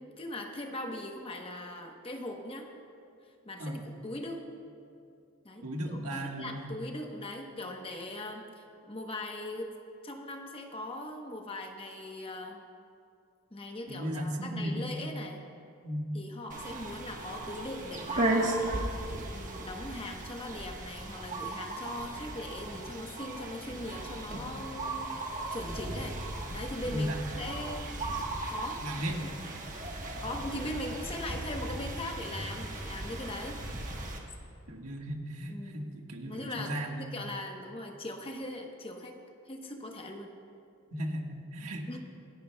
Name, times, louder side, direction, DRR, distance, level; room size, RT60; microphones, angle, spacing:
voice 1, 0.0-2.7 3.4-4.4 5.4-9.8 10.0-12.6 13.5-15.4 16.1-18.6 19.3-26.2 26.5-28.1 28.5-28.8 30.2-33.6 35.5-35.9 36.3-36.7 37.0-39.2 39.5-40.3 41.9-42.0, left 1 dB, 25° left, 3 dB, 1.0 m, -40 dB
voice 2, 5.6-6.7 13.9-15.0 15.8-16.2 26.9-27.2 28.8-29.1 34.7-37.0 40.9-41.9, equal, 85° right, 1 dB, 1.5 m, -36 dB
sound 1, 16.5-34.2, right 2 dB, 35° right, 1.3 m, -36 dB
26.5 x 10.0 x 2.3 m, 2.5 s
head